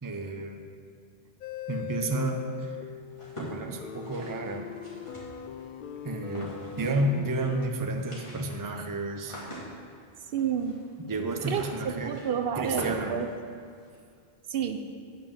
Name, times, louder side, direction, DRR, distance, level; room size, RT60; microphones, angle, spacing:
voice 1, 0.0-0.6 1.7-2.8 3.4-4.7 6.0-9.4 11.1-12.2 12.6-13.1, right 2 dB, 25° right, 4 dB, 0.6 m, -31 dB
sound 1, 1.4-7.7, left 9 dB, 60° left, 0.7 m, -40 dB
sound 2, 3.1-5.6 6.2-7.2 7.4-7.5 7.8-14.0, equal, 30° left, 2.4 m, -44 dB
voice 2, 10.3-10.8 11.5-13.3 14.5-14.8, right 8 dB, 70° right, 7 dB, 0.8 m, -30 dB
9.0 x 5.6 x 7.1 m, 2.2 s
omnidirectional pair, 1.1 m